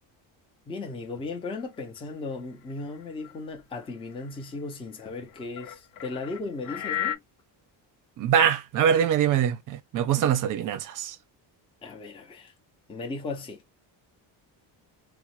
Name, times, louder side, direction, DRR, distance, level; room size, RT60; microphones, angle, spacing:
voice 1, 0.7-7.2 11.8-12.5 12.9-13.6, left 3 dB, 15° left, 0.4 m, -36 dB
sound 1, 1.2-1.3 1.7-1.8 2.7-3.6 4.2-4.4 5.3-7.2, left 10 dB, 85° left, 0.8 m, -34 dB
voice 2, 8.2-11.2, right 9 dB, 45° right, 0.5 m, -23 dB
2.9 x 2.1 x 2.9 m
cardioid pair, 175°, 44 cm